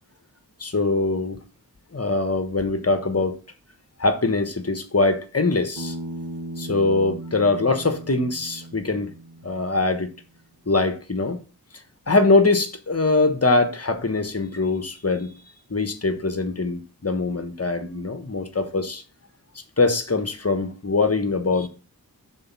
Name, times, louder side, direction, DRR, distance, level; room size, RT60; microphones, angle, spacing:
voice 1, 0.6-1.4 1.9-3.4 4.0-5.9 6.6-9.1 9.4-10.1 10.7-11.4 12.1-15.3 15.7-19.0 19.8-21.7, left 3 dB, 40° left, 1.2 m, -22 dB
Bass guitar, 5.8-10.0, right 2 dB, 85° right, 1.2 m, -37 dB
6.2 x 4.2 x 5.9 m
wide cardioid pair, 50°, 38 cm